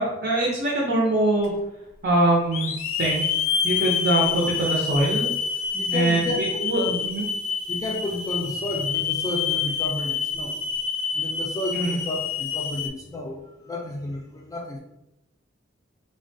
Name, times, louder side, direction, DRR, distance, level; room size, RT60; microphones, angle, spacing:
voice 1, 0.0-1.5 2.0-2.7 3.0-3.3 3.6-5.3 5.9-7.2 11.7-12.0, right 2 dB, 50° right, -3 dB, 0.6 m, -23 dB
Hiss / Alarm, 1.4-1.5 2.5-12.9, left 6 dB, 85° left, 0.4 m, -27 dB
voice 2, 5.7-7.0 7.7-10.5 11.1-14.8, left 1 dB, 15° left, 0 dB, 0.4 m, -31 dB
3.5 x 2.2 x 2.6 m, 0.88 s
head